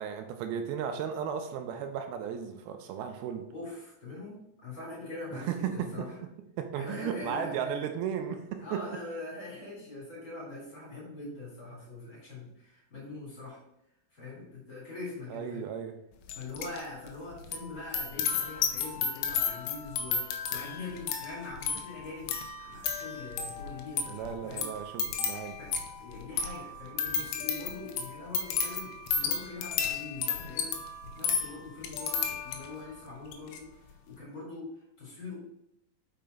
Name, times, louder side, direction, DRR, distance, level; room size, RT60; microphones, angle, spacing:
voice 1, 0.0-3.5 5.3-6.1 6.6-8.8 15.3-15.9 24.1-25.6, right 8 dB, 80° right, 6 dB, 2.3 m, -35 dB
voice 2, 3.5-6.1 6.7-7.8 8.6-13.6 14.1-15.7 16.3-22.3 22.6-24.2 24.5-24.7 25.6-35.5, left 2 dB, 25° left, -4 dB, 3.2 m, -43 dB
sound 1, 16.3-16.8 17.1-32.8 33.3-33.6, left 6 dB, 85° left, 2.8 m, -33 dB
5.8 x 5.5 x 5.2 m, 0.82 s
omnidirectional pair, 4.7 m